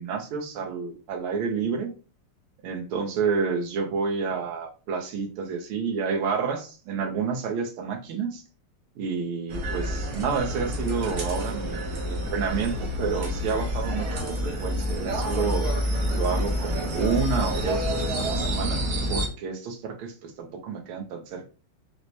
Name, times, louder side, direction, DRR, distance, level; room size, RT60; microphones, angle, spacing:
voice 1, 0.0-1.9 2.6-8.4 9.0-15.7 16.1-18.8 19.1-21.5, right 5 dB, 80° right, 3 dB, 1.6 m, -29 dB
sound 1, 9.5-19.3, equal, 65° right, 1.0 m, -28 dB
4.6 x 2.1 x 2.7 m, 0.36 s
omnidirectional pair, 2.4 m